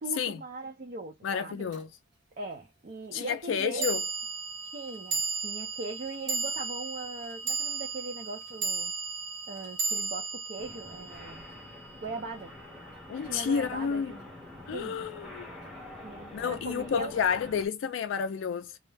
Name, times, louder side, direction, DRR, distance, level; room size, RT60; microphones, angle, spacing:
voice 1, 0.0-1.7 2.4-4.0 4.7-8.9 9.5-11.5 12.0-12.5 13.2-14.3 14.7-15.0 16.0-17.2, right 3 dB, 45° right, 0.5 m, -40 dB
voice 2, 1.2-1.9 3.1-4.0 13.1-14.2 14.7-15.5 16.3-18.8, left 7 dB, 75° left, 0.3 m, -30 dB
sound 1, 1.7-1.8 3.8-12.2, right 4 dB, 75° right, 1.2 m, -34 dB
sound 2, 10.6-17.7, left 1 dB, ahead, 0.8 m, -46 dB
2.3 x 2.0 x 3.2 m
head